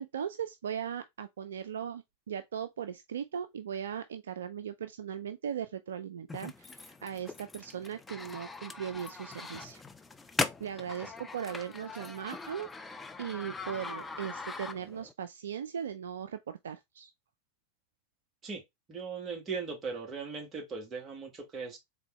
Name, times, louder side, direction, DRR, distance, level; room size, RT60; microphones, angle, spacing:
voice 1, 0.0-9.8 10.6-17.1, right 8 dB, 65° right, 0.3 m, -38 dB
sound 1, 6.3-15.1, left 3 dB, 10° left, 0.4 m, -40 dB
voice 2, 18.9-21.8, right 5 dB, 25° right, 1.5 m, -38 dB
4.0 x 3.4 x 3.1 m
figure-of-eight pair, 90°, 0 cm